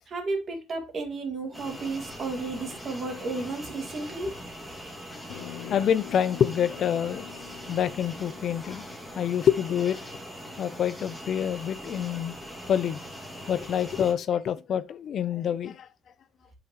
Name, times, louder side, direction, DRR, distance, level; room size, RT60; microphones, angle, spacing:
voice 1, 0.1-4.3, right 3 dB, 35° right, 2.0 m, -33 dB
sound 1, 1.5-14.1, equal, ahead, 1.9 m, -41 dB
sound 2, 5.3-10.0, left 15 dB, 85° left, 0.7 m, -45 dB
voice 2, 5.6-7.3 7.7-8.9 9.1-10.0 10.6-12.3 12.7-13.0 13.5-15.9, left 9 dB, 50° left, 0.4 m, -26 dB
8.3 x 5.7 x 2.9 m
cardioid pair, 140°, 0 cm